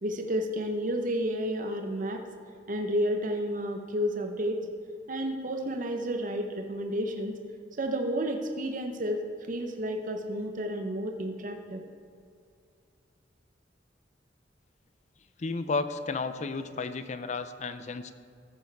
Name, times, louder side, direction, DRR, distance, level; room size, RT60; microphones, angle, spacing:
voice 1, 0.0-2.2 2.7-4.6 5.1-7.4 7.8-9.2 9.5-11.8, equal, 45° right, 5 dB, 0.8 m, -31 dB
voice 2, 15.4-18.1, left 4 dB, 40° left, 11 dB, 0.5 m, -33 dB
14.5 x 7.0 x 4.6 m, 2.3 s
head